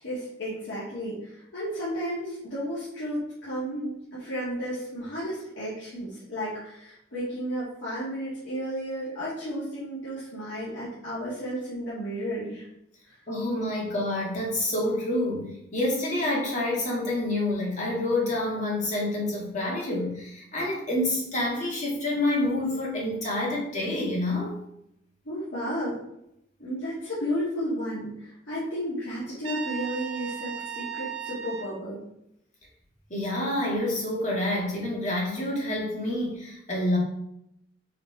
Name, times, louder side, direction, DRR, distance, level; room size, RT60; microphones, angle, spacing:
voice 1, 0.0-12.7 25.3-26.0 26.6-32.0, equal, 90° left, -10 dB, 2.3 m, -33 dB
voice 2, 13.3-24.6 33.1-37.0, left 1 dB, 40° left, -3 dB, 2.0 m, -28 dB
Trumpet, 29.4-31.8, right 7 dB, 75° right, 1.6 m, -36 dB
5.7 x 3.9 x 4.5 m, 0.79 s
head